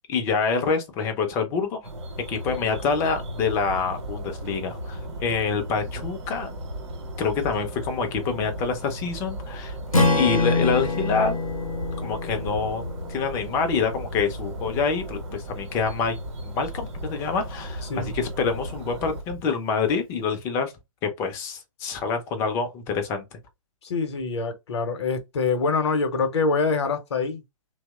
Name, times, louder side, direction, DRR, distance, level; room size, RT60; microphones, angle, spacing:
voice 1, 0.1-1.8 2.3-6.5 7.2-9.8 10.2-11.4 12.0-12.8 13.1-16.2 16.4-20.7 21.0-23.4, left 5 dB, 15° left, 0.4 m, -26 dB
sound 1, 1.8-19.2, right 1 dB, 55° right, 0.8 m, -39 dB
sound 2, 2.4-19.4, right 1 dB, 85° right, 0.7 m, -38 dB
Strum, 9.9-14.2, left 3 dB, 90° left, 0.6 m, -26 dB
voice 2, 17.8-18.2 23.8-27.4, left 4 dB, 55° left, 0.6 m, -25 dB
2.7 x 2.0 x 2.2 m
figure-of-eight pair, 125°, 17 cm